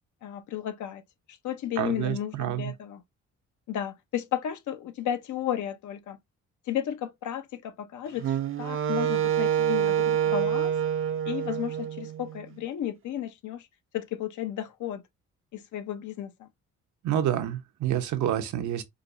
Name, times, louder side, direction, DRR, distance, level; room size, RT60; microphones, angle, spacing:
voice 1, 0.2-1.0 1.3-3.0 3.7-6.2 6.7-10.7 11.2-13.7 13.9-15.0 15.5-16.5, left 11 dB, 75° left, 0.7 m, -33 dB
voice 2, 1.8-2.6 17.0-18.8, right 11 dB, 70° right, 0.8 m, -28 dB
Wind instrument woodwind instrument, 8.2-12.4, right 9 dB, 45° right, 0.5 m, -27 dB
5.0 x 2.0 x 2.5 m
cardioid pair, 90°, 30 cm